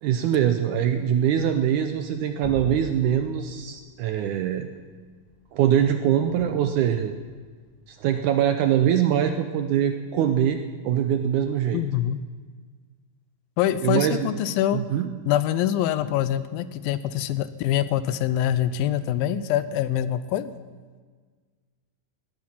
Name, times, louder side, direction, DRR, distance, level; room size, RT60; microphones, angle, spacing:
voice 1, 0.0-4.7 5.5-7.2 7.9-11.8 13.8-14.3 14.7-15.1, right 9 dB, 75° right, 7 dB, 1.8 m, -23 dB
sound 1, 1.8-8.4, left 2 dB, 20° left, 1.3 m, -43 dB
voice 2, 11.7-12.2 13.6-14.8 15.3-20.5, left 11 dB, 90° left, 14 dB, 2.4 m, -24 dB
18.5 x 12.0 x 5.9 m, 1.5 s
omnidirectional pair, 4.1 m